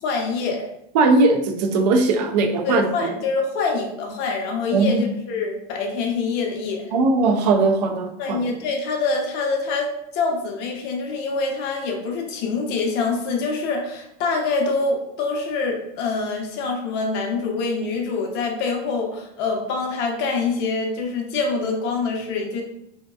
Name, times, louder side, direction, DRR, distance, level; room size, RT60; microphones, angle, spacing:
voice 1, 0.0-0.7 2.6-6.9 8.2-22.6, left 4 dB, 55° left, 1 dB, 0.7 m, -25 dB
voice 2, 0.9-3.1 4.7-5.1 6.9-8.5, right 3 dB, 85° right, 5 dB, 0.4 m, -19 dB
2.8 x 2.2 x 2.3 m, 0.77 s
supercardioid pair, 115°, 20 cm